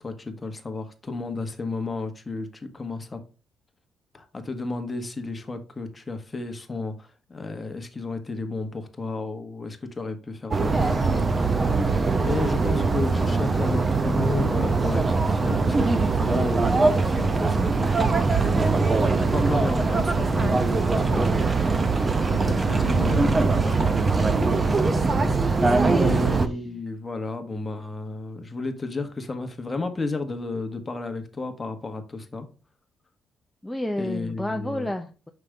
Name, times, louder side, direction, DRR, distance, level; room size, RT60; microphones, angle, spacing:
voice 1, 0.0-3.2 4.1-12.0 12.2-21.8 22.3-23.8 26.0-32.5 34.0-34.9, left 3 dB, 25° left, 1.2 m, -33 dB
sound 1, 10.5-26.5, right 3 dB, 30° right, 0.8 m, -22 dB
voice 2, 25.5-26.3 33.6-35.3, left 1 dB, 5° left, 0.6 m, -30 dB
5.9 x 5.1 x 3.4 m
cardioid pair, 90°, 0 cm